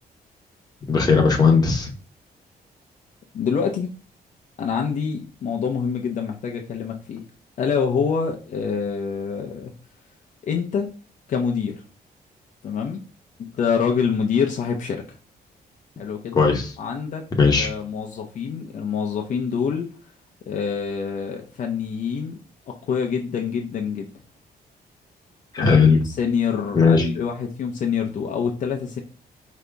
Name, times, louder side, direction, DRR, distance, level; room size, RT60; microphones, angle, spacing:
voice 1, 0.9-1.9 16.3-16.7 17.4-17.7 25.5-26.0 26.8-27.1, left 5 dB, 25° left, 1 dB, 0.9 m, -17 dB
voice 2, 3.3-3.9 4.6-7.2 7.6-9.7 10.4-10.9 11.3-11.8 12.6-13.0 13.4-15.2 16.0-16.5 16.8-17.2 17.5-19.9 20.5-22.4 22.7-24.1 25.6-29.0, left 6 dB, 50° left, 1 dB, 0.6 m, -26 dB
5.1 x 2.8 x 3.4 m, 0.37 s
wide cardioid pair, 175°, 17 cm